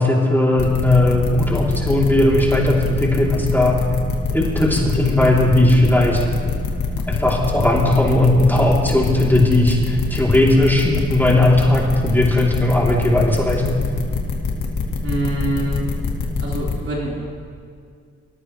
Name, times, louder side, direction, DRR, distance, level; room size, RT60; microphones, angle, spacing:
voice 1, 0.0-3.8 4.3-6.2 7.1-13.8, left 1 dB, 5° left, -3 dB, 3.2 m, -17 dB
sound 1, 0.6-16.7, left 5 dB, 80° left, 2.1 m, -24 dB
voice 2, 15.0-15.9 16.4-17.3, right 1 dB, 50° right, -5 dB, 4.4 m, -25 dB
24.5 x 14.0 x 3.2 m, 2.2 s
cardioid pair, 65°, 29 cm